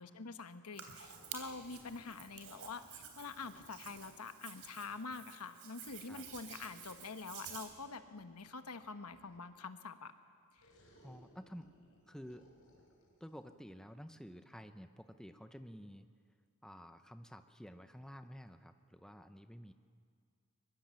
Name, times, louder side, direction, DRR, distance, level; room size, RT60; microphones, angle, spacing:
voice 1, 0.0-10.1 10.5-10.6, left 4 dB, 90° left, 10 dB, 1.2 m, -46 dB
Hands, 0.7-7.7, right 8 dB, 75° right, 3.4 m, -51 dB
sound 1, 1.0-4.4 5.8-9.6 10.6-13.5, equal, 70° left, 5.2 m, -66 dB
voice 2, 11.0-11.7 12.1-12.4 13.2-16.1 16.6-19.7, equal, 5° left, 8 dB, 0.7 m, -51 dB
22.5 x 22.0 x 7.7 m, 2.2 s
head